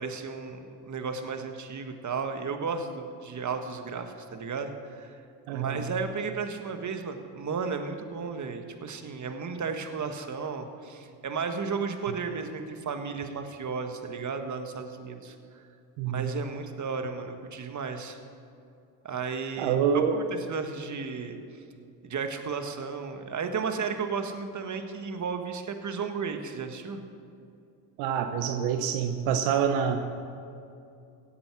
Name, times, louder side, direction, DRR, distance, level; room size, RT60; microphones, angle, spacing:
voice 1, 0.0-5.2 5.5-15.3 16.0-18.2 19.0-21.4 22.0-27.0, right 5 dB, 35° right, 6 dB, 1.6 m, -34 dB
voice 2, 5.5-5.8 16.0-16.3 19.6-20.2 28.0-30.0, right 8 dB, 75° right, 7 dB, 1.1 m, -26 dB
16.5 x 8.6 x 6.1 m, 2.5 s
supercardioid pair, 70°, 49 cm